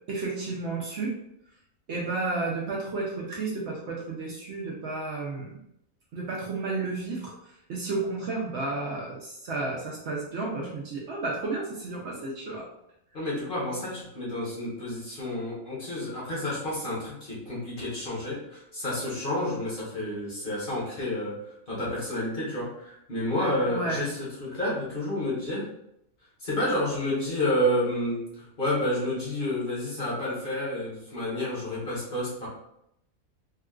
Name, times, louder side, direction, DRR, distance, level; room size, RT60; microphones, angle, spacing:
voice 1, 0.1-1.1 1.9-5.6 6.1-12.7 23.7-24.0, right 3 dB, 65° right, -3 dB, 0.8 m, -32 dB
voice 2, 13.1-21.3 21.7-25.7 26.4-32.5, left 1 dB, 40° left, -6 dB, 1.0 m, -30 dB
3.6 x 2.3 x 2.3 m, 0.78 s
omnidirectional pair, 1.5 m